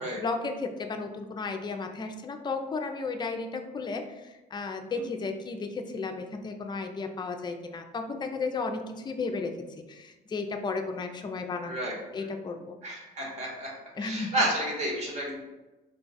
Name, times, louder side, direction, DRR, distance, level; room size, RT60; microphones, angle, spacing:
voice 1, 0.0-12.8 13.9-14.3, left 4 dB, 25° left, 5 dB, 0.4 m, -34 dB
voice 2, 11.6-12.0 12.8-13.7 14.0-15.4, right 1 dB, 45° right, -2 dB, 1.4 m, -31 dB
3.8 x 2.3 x 4.0 m, 1.1 s
cardioid pair, 110°, 17 cm